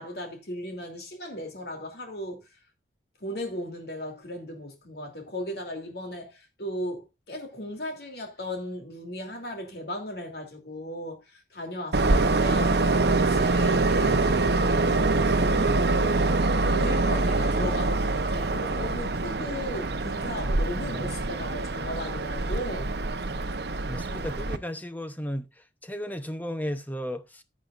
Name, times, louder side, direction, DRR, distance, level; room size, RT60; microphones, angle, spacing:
voice 1, 0.0-2.5 3.2-22.9, left 1 dB, 55° left, 3.0 m, -36 dB
Train, 11.9-24.6, right 3 dB, 60° right, 0.9 m, -25 dB
voice 2, 23.9-25.5 25.8-27.4, equal, 10° left, 0.8 m, -34 dB
15.0 x 8.4 x 2.5 m
head